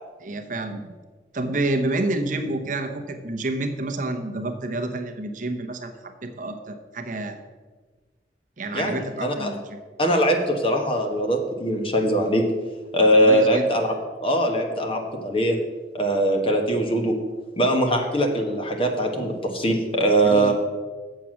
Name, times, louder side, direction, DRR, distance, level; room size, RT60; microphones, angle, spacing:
voice 1, 0.2-0.9 1.3-7.4 8.6-9.8 13.2-13.7 20.2-20.5, right 2 dB, 45° right, 6 dB, 0.8 m, -29 dB
voice 2, 8.7-9.5 10.0-12.4 12.9-14.0 14.2-15.6 15.9-17.2 17.6-20.5, right 1 dB, 30° left, 3 dB, 1.2 m, -21 dB
7.5 x 7.0 x 6.2 m, 1.4 s
head